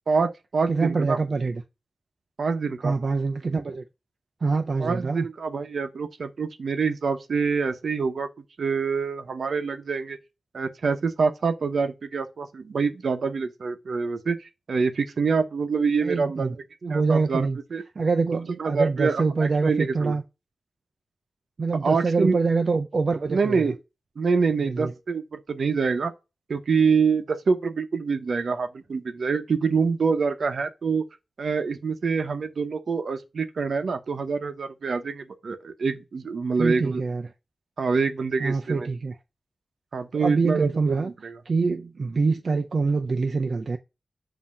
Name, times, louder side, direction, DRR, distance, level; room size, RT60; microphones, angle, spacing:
voice 1, 0.1-1.2 2.4-2.9 4.8-8.3 8.6-10.2 10.5-16.6 16.9-17.8 18.5-20.2 21.8-22.4 23.3-23.7 24.2-26.1 26.5-31.0 31.4-37.0 37.8-38.9 39.9-41.4, right 5 dB, 75° right, 0.8 m, -26 dB
voice 2, 0.7-1.6 2.8-3.8 4.4-5.3 16.0-16.6 16.8-17.6 18.0-20.2 21.6-23.7 24.6-24.9 36.6-37.3 38.4-39.1 40.2-41.1 41.5-43.8, right 4 dB, 55° right, 0.5 m, -25 dB
7.4 x 2.8 x 5.5 m
wide cardioid pair, 125°, 0 cm